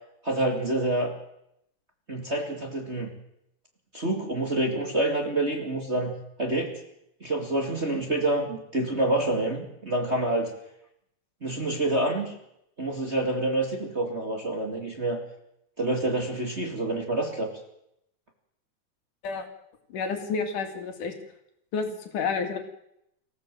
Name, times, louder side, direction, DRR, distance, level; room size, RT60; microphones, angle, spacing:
voice 1, 0.2-1.1 2.1-3.1 3.9-6.7 7.2-10.5 11.4-12.4 12.8-15.2 15.8-17.5, right 1 dB, 20° right, 1 dB, 2.3 m, -27 dB
voice 2, 19.9-21.1 21.7-22.6, left 5 dB, 70° left, 5 dB, 3.8 m, -30 dB
25.0 x 15.5 x 7.7 m, 0.79 s
omnidirectional pair, 3.8 m